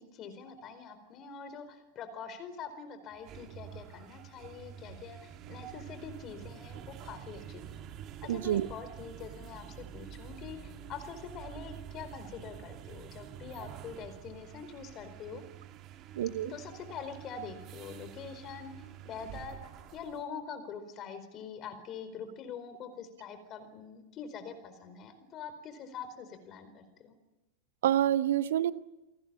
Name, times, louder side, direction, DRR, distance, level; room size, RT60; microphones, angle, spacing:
voice 1, 0.0-7.8 8.2-15.4 16.4-18.7 19.0-19.6 19.9-27.1, left 6 dB, 30° left, 10 dB, 4.5 m, -44 dB
sound 1, 3.1-20.3, right 9 dB, 35° right, 2.2 m, -48 dB
voice 2, 8.3-8.7 16.2-16.5 27.8-28.7, right 11 dB, 60° right, 16 dB, 1.0 m, -27 dB
29.0 x 19.5 x 8.8 m, 1.0 s
figure-of-eight pair, 90°, 0 cm